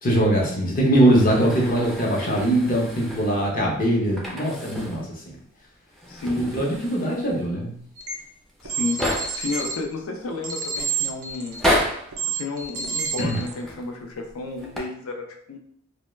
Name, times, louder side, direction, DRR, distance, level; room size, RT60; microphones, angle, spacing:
voice 1, 0.0-5.4 6.4-7.8 13.2-13.4, right 1 dB, 40° left, -2 dB, 0.7 m, -21 dB
sound 1, 1.1-3.6 4.1-5.1 5.4-5.5 5.9-7.5 8.2-8.3 8.5-9.5 10.2-10.7 11.4-12.2 13.2-13.9 14.5-14.8, equal, ahead, 0.4 m, -30 dB
voice 2, 6.1-6.5 7.1-7.2 8.6-11.6 12.4-15.6, left 3 dB, 75° left, 4 dB, 0.4 m, -31 dB
sound 2, 8.0-8.1 8.6-9.7 10.4-11.8 12.1-13.5, right 5 dB, 80° right, 0.5 m, -28 dB
2.2 x 2.1 x 3.1 m, 0.65 s
head